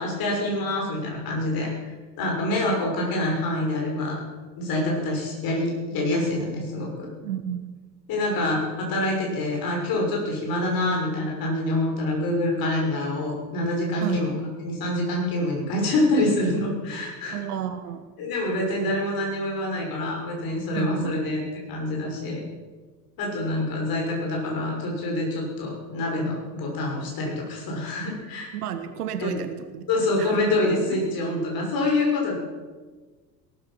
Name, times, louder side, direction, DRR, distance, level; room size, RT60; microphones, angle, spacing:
voice 1, 0.0-4.2 4.6-7.1 8.1-14.3 14.6-17.4 18.2-22.4 23.2-28.5 29.2-29.3 29.9-32.3, left 1 dB, 45° left, 0 dB, 6.3 m, -26 dB
voice 2, 7.2-7.7 14.0-14.2 17.3-18.0 20.7-21.2 28.5-29.9 30.2-30.4 30.9-31.0, right 10 dB, 65° right, 9 dB, 1.6 m, -31 dB
18.5 x 12.5 x 6.0 m, 1.4 s
figure-of-eight pair, 70°, 48 cm